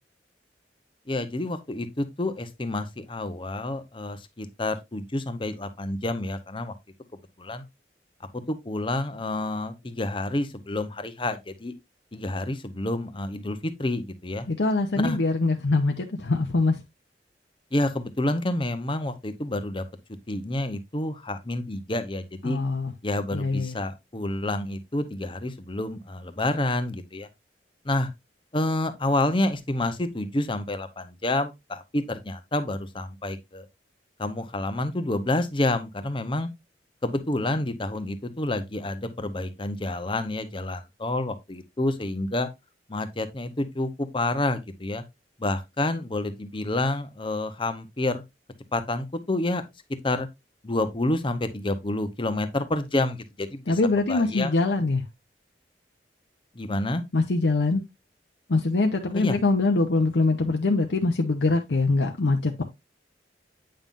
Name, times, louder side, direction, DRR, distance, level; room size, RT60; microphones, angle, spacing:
voice 1, 1.1-6.7 7.4-7.6 8.3-11.7 12.1-14.5 15.0-15.2 17.7-19.8 20.3-22.6 23.0-27.3 27.8-28.1 28.5-33.7 34.2-36.5 37.0-42.5 42.9-45.0 45.4-48.2 48.7-49.6 50.0-50.3 50.6-53.8 54.1-54.6 56.5-57.0 59.1-59.4, left 2 dB, 30° left, 0.8 m, -28 dB
voice 2, 14.5-16.8 22.4-22.9 23.3-23.8 53.7-55.0 57.1-57.8 58.5-62.6, left 3 dB, 80° left, 0.8 m, -23 dB
8.8 x 5.5 x 2.5 m
head